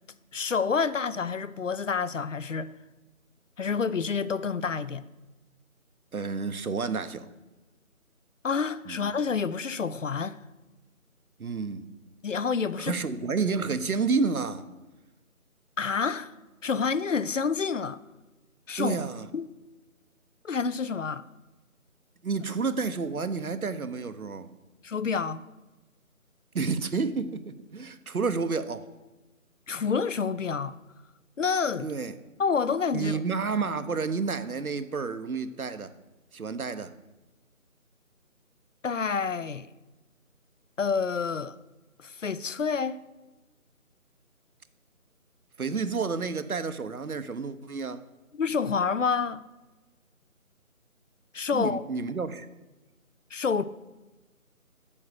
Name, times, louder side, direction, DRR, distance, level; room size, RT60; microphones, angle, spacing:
voice 1, 0.3-2.7 3.6-5.0 8.4-10.4 12.2-13.0 15.8-16.3 16.6-18.0 18.7-19.0 19.3-19.5 20.4-21.2 24.8-25.4 29.7-30.7 31.4-31.9 32.4-33.2 38.8-39.7 40.8-41.6 42.0-43.0 48.3-49.4 51.3-51.8 53.3-53.6, left 5 dB, 60° left, 0.5 m, -28 dB
voice 2, 6.1-7.3 8.9-9.0 11.4-11.9 12.8-14.7 18.8-19.3 22.2-24.5 26.5-28.9 31.8-32.1 32.9-35.9 36.3-36.9 45.6-48.0 51.5-52.5, right 4 dB, 80° right, 0.9 m, -30 dB
8.6 x 6.4 x 6.5 m
figure-of-eight pair, 165°, 43 cm